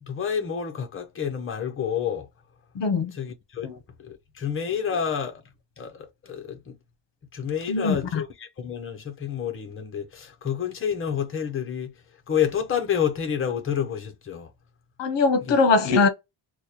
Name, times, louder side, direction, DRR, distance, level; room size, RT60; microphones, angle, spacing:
voice 1, 0.0-2.3 3.1-3.7 4.0-5.4 5.8-6.8 7.3-11.9 12.3-14.5 15.4-15.6, left 8 dB, 25° left, 0.6 m, -29 dB
voice 2, 2.7-3.1 3.6-3.8 7.7-8.2 15.0-16.1, left 4 dB, 60° left, 0.8 m, -21 dB
3.0 x 2.2 x 4.1 m
wide cardioid pair, 180°, 48 cm